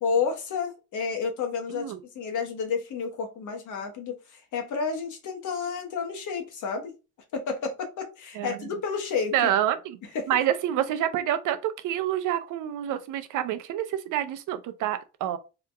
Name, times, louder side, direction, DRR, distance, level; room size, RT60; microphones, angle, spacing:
voice 1, 0.0-6.9 7.3-9.5 10.1-10.3, left 5 dB, 75° left, 1.2 m, -30 dB
voice 2, 9.3-10.0 10.3-15.4, right 11 dB, 85° right, 0.6 m, -27 dB
3.5 x 2.8 x 3.3 m
cardioid pair, 90°, 30 cm